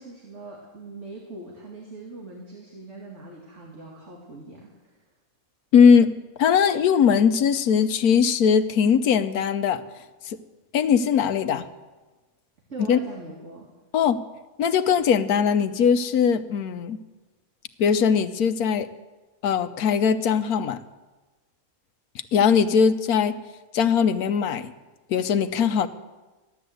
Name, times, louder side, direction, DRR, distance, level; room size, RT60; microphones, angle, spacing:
voice 1, 0.0-5.0 12.7-13.7, right 3 dB, 50° right, -2 dB, 2.6 m, -41 dB
voice 2, 5.7-6.1 6.4-9.8 10.3-10.4 10.7-11.7 12.9-13.0 13.9-14.2 14.6-17.0 17.8-18.9 19.4-20.8 22.3-23.4 23.7-24.7 25.1-25.9, left 7 dB, 85° left, 10 dB, 1.3 m, -20 dB
15.5 x 12.0 x 7.8 m, 1.2 s
omnidirectional pair, 1.6 m